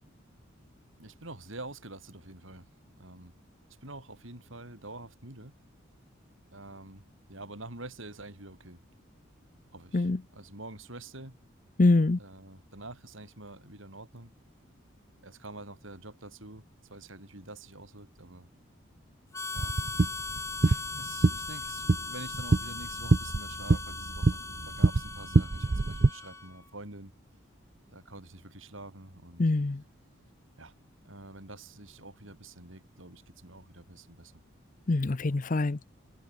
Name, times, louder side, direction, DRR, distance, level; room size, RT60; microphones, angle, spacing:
voice 1, 1.0-2.7 3.0-3.3 3.8-5.5 6.5-7.0 7.3-8.8 9.7-11.4 12.1-14.3 15.2-18.5 19.5-19.7 20.1-20.2 20.6-27.1 27.9-29.4 30.6-30.7 31.0-34.3, right 2 dB, 75° right, 5.7 m, -46 dB
voice 2, 11.8-12.2 29.4-29.8 34.9-35.8, left 2 dB, 40° left, 0.6 m, -24 dB
Harmonica, 19.3-26.6, left 3 dB, 15° left, 6.7 m, -39 dB
sound 1, 19.6-26.1, right 3 dB, 40° right, 0.5 m, -26 dB
head